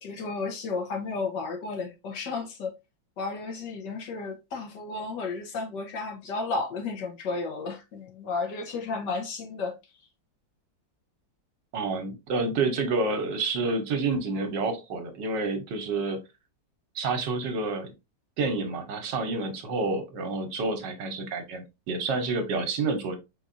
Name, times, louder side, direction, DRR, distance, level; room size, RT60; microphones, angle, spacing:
voice 1, 0.0-2.7 3.2-9.7, left 4 dB, 65° left, 1.6 m, -33 dB
voice 2, 11.7-16.2 16.9-17.9 18.4-23.2, right 3 dB, 70° right, 1.5 m, -29 dB
4.5 x 4.2 x 2.5 m
omnidirectional pair, 2.1 m